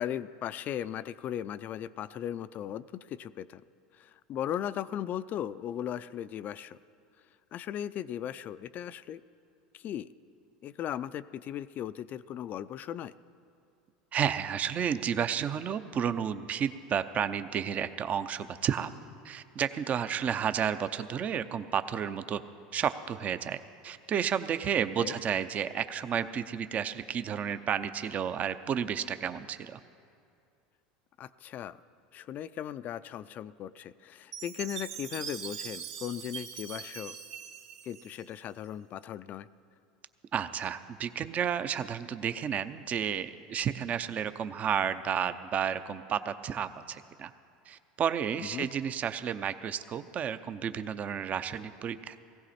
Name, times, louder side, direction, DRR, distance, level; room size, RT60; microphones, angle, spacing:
voice 1, 0.0-3.6 3.9-6.8 7.5-9.2 9.7-10.1 10.6-13.1 25.0-25.1 31.2-31.8 32.1-37.2 37.9-39.5 48.5-48.7, left 10 dB, 40° left, 15 dB, 0.4 m, -37 dB
voice 2, 14.1-18.9 19.2-22.4 22.7-23.6 23.8-29.8 40.3-47.3 47.7-52.2, right 8 dB, 35° right, 12 dB, 0.6 m, -31 dB
Chime, 34.3-38.7, right 8 dB, 70° right, 1.2 m, -42 dB
18.0 x 16.0 x 4.3 m, 2.5 s
supercardioid pair, 105°, 4 cm